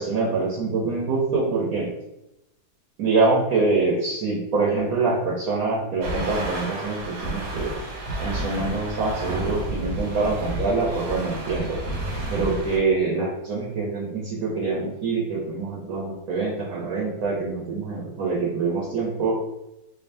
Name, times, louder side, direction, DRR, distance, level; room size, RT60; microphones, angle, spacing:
voice 1, 0.0-1.9 3.0-7.7 8.2-11.8 12.3-19.4, right 3 dB, 70° right, -3 dB, 1.1 m, -25 dB
sound 1, 6.0-12.8, right 1 dB, 85° right, 1.3 m, -31 dB
4.6 x 2.7 x 2.6 m, 0.89 s
omnidirectional pair, 1.7 m